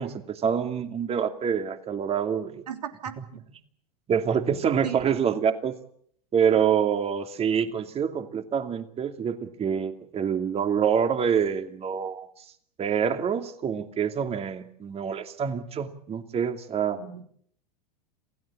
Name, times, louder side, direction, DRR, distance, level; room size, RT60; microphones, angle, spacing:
voice 1, 0.0-2.6 4.1-5.7 6.3-12.3 12.8-17.0, right 7 dB, 30° right, 8 dB, 2.6 m, -26 dB
voice 2, 2.7-3.4 4.8-5.0 17.0-17.2, right 9 dB, 90° right, 6 dB, 3.3 m, -36 dB
28.0 x 16.5 x 8.6 m, 0.65 s
hypercardioid pair, 100°, 20 cm